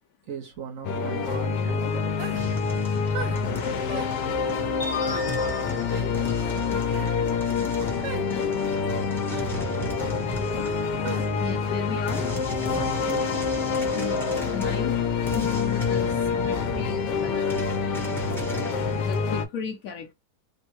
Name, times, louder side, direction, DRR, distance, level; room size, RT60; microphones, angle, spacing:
voice 1, 0.3-2.5 12.7-13.4, right 7 dB, 60° right, 1.0 m, -38 dB
sound 1, 0.8-19.5, left 5 dB, 80° left, 1.2 m, -27 dB
sound 2, 2.2-2.5 3.1-3.4 3.9-4.1 5.0-5.3 5.9-6.1 6.8-7.1 8.0-8.3 9.3-9.5 11.0-11.3, right 7 dB, 80° right, 1.2 m, -36 dB
sound 3, 2.4-19.3, equal, ahead, 0.5 m, -38 dB
voice 2, 4.8-6.2 6.5-7.7 8.3-8.9 11.4-12.3 13.9-14.9 15.3-18.0 19.0-20.1, left 6 dB, 65° left, 0.9 m, -35 dB
3.6 x 2.0 x 2.9 m
omnidirectional pair, 1.8 m